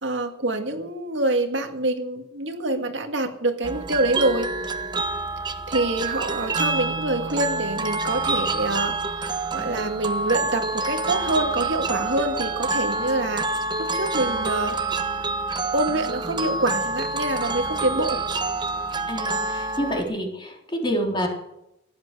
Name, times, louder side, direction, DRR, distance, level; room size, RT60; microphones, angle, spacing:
voice 1, 0.0-4.5 5.7-9.0 9.5-13.5 13.8-14.8 15.7-18.2, right 2 dB, 70° right, 5 dB, 2.0 m, -26 dB
sound 1, 3.6-20.0, right 3 dB, 25° right, 1.1 m, -27 dB
voice 2, 19.1-21.3, equal, 25° left, 1 dB, 3.6 m, -27 dB
16.5 x 11.0 x 6.8 m, 0.84 s
head